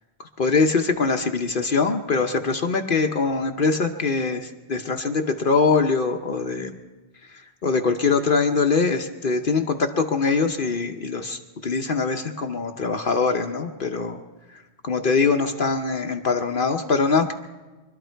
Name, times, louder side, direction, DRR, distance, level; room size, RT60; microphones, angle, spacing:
voice 1, 0.2-6.7 7.2-14.2 14.5-17.3, left 4 dB, 55° left, 5 dB, 1.0 m, -23 dB
24.5 x 12.5 x 4.5 m, 1.2 s
omnidirectional pair, 1.1 m